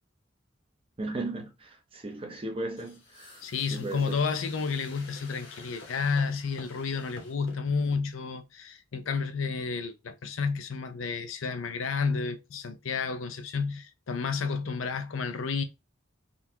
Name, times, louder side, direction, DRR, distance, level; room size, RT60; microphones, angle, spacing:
voice 1, 1.0-3.4 3.7-4.2, right 2 dB, 30° right, 0.7 m, -36 dB
sound 1, 2.8-7.6, left 3 dB, 65° left, 0.9 m, -50 dB
voice 2, 3.4-15.6, left 5 dB, 85° left, 0.5 m, -31 dB
3.7 x 2.4 x 2.8 m
head